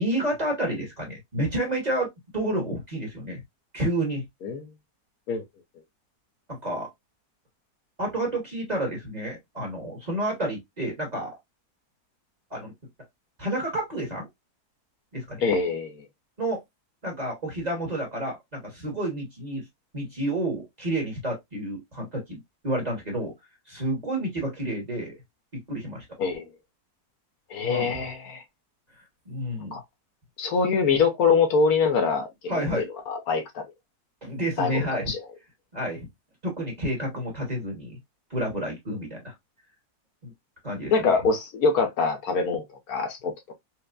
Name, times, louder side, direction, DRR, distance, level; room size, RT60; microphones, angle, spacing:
voice 1, 0.0-3.4 3.7-4.2 6.5-6.9 8.0-11.3 12.5-12.7 13.4-14.3 15.1-15.4 16.4-16.6 17.0-19.6 19.9-23.3 23.7-25.2 25.7-26.0 27.6-27.9 29.3-29.8 32.5-32.8 34.2-35.1 35.7-36.1 36.4-38.0 38.3-39.3 40.2-40.3 40.6-41.2, right 1 dB, 30° right, 1.3 m, -30 dB
voice 2, 15.4-16.0 26.2-26.4 27.5-28.4 29.7-29.8 30.4-33.6 34.6-35.2 40.9-43.3, left 5 dB, 70° left, 1.2 m, -24 dB
4.4 x 2.2 x 2.4 m
omnidirectional pair, 1.6 m